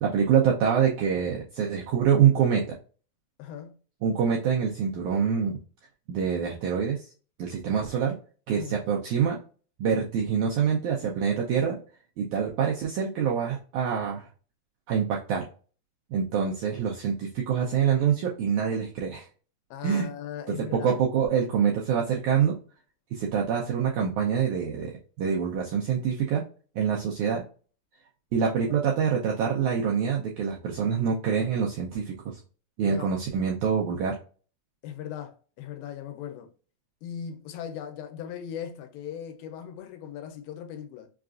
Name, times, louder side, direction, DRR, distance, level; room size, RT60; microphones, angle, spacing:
voice 1, 0.0-2.7 4.0-5.6 6.1-7.1 7.4-8.2 8.5-9.4 9.8-11.8 12.2-14.2 14.9-15.5 16.1-19.3 19.8-20.1 20.6-22.6 23.1-26.4 26.7-27.4 28.3-32.4 32.8-34.2, right 7 dB, 90° right, 1.7 m, -25 dB
voice 2, 3.4-3.7 8.6-8.7 19.7-21.0 32.8-33.1 34.8-36.5 37.0-41.1, left 9 dB, 90° left, 2.5 m, -38 dB
5.7 x 2.4 x 2.4 m
omnidirectional pair, 4.2 m